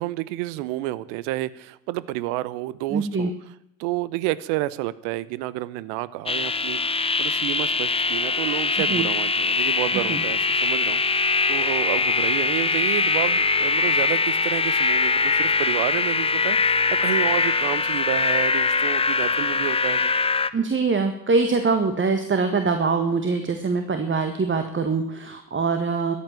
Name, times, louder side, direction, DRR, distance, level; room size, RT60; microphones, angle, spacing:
voice 1, 0.0-3.3 3.8-20.1, right 17 dB, 65° right, 18 dB, 0.9 m, -30 dB
voice 2, 2.9-3.3 8.9-9.1 10.1-10.2 20.5-26.1, right 4 dB, 25° right, 7 dB, 1.7 m, -23 dB
sound 1, 6.3-20.5, left 4 dB, 10° left, 0.8 m, -22 dB
13.5 x 8.7 x 8.8 m, 0.82 s
hypercardioid pair, 70°, 50 cm